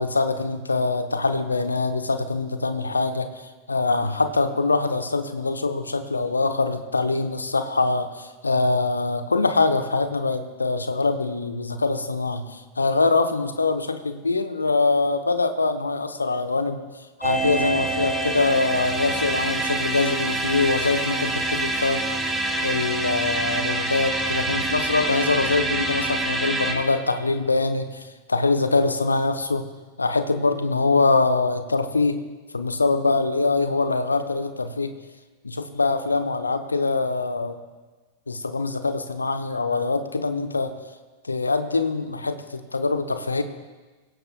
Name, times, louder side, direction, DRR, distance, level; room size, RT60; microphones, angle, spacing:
voice 1, 0.0-3.3 3.7-16.8 17.2-22.0 22.6-29.6 30.0-32.2 32.5-34.9 35.4-37.6 38.3-40.7 41.2-43.4, left 3 dB, 80° left, 9 dB, 0.8 m, -23 dB
sound 1, 17.2-26.7, right 2 dB, 10° right, 2.6 m, -26 dB
24.5 x 16.5 x 2.3 m, 1.3 s
figure-of-eight pair, 90°, 0 cm